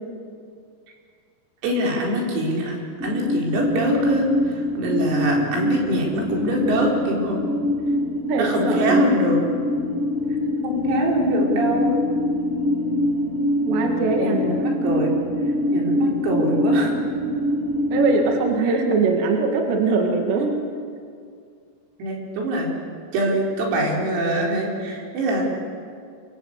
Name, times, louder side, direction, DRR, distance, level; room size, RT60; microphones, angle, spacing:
voice 1, 1.6-7.4 8.4-9.4 10.6-12.1 14.2-15.2 15.7-16.9 18.7-18.8 22.0-22.7 23.1-25.4, right 1 dB, 90° right, -1 dB, 7.1 m, -23 dB
sound 1, 3.0-18.4, left 1 dB, 20° right, 3.1 m, -24 dB
voice 2, 8.3-9.1 13.7-14.7 17.9-20.5, right 4 dB, 60° right, 2 dB, 4.2 m, -22 dB
27.5 x 23.0 x 8.4 m, 2.2 s
omnidirectional pair, 5.9 m